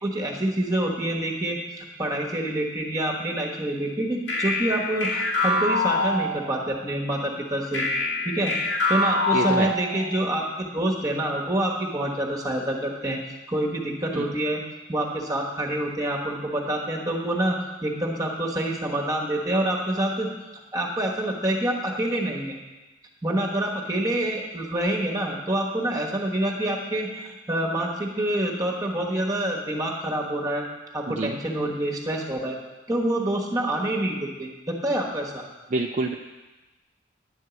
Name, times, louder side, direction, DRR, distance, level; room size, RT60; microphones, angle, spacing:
voice 1, 0.0-7.8 8.2-8.5 8.9-13.2 13.5-14.6 14.9-20.3 20.7-22.6 23.2-30.6 30.9-32.6 32.9-35.4, right 1 dB, 20° right, -2 dB, 1.3 m, -27 dB
sound 1, 4.3-6.8 7.7-10.2, left 2 dB, 85° left, 2.4 m, -25 dB
voice 2, 9.3-9.7 14.1-14.2 31.2-31.4 35.7-36.2, right 3 dB, 40° right, 2 dB, 0.4 m, -26 dB
11.0 x 4.6 x 8.2 m, 1.1 s
head